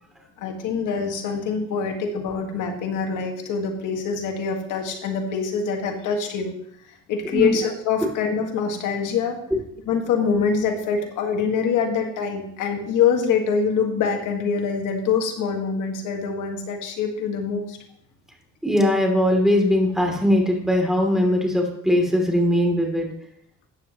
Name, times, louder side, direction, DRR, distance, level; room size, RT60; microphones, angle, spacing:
voice 1, 0.4-6.5 7.1-9.4 9.9-17.8, left 6 dB, 90° left, 3 dB, 1.9 m, -24 dB
voice 2, 18.6-23.1, left 1 dB, ahead, 0 dB, 3.1 m, -20 dB
14.0 x 9.5 x 3.1 m, 0.68 s
cardioid pair, 90°, 30 cm